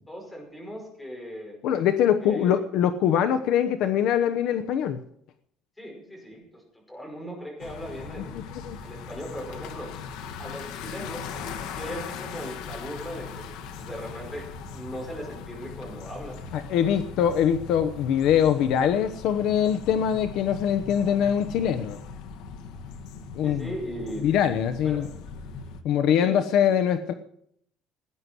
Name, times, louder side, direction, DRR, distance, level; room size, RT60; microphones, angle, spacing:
voice 1, 0.1-1.6 2.2-2.6 5.8-8.3 8.8-9.9 10.4-16.4 20.9-21.1 23.4-24.3 24.8-25.1 26.2-26.7, equal, 5° left, 0 dB, 5.4 m, -38 dB
voice 2, 1.6-5.0 8.3-8.8 16.5-22.0 23.3-23.7 24.2-25.1 25.8-27.1, left 9 dB, 55° left, 9 dB, 1.0 m, -23 dB
sound 1, 7.6-25.8, left 5 dB, 75° left, 1.7 m, -39 dB
18.0 x 9.8 x 6.2 m, 0.68 s
cardioid pair, 175°, 0 cm